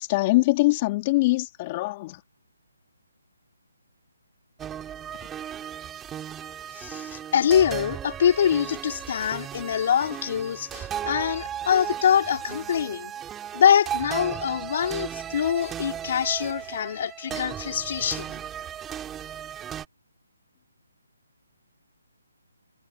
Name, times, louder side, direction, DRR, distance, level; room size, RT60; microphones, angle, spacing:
voice 1, 0.0-2.2, left 20 dB, 25° left, 4.1 m, -23 dB
sound 1, 4.6-19.8, right 9 dB, 10° right, 5.7 m, -36 dB
voice 2, 6.7-13.1 13.5-18.4, left 8 dB, 45° left, 4.1 m, -24 dB
hypercardioid pair, 165°, 0 cm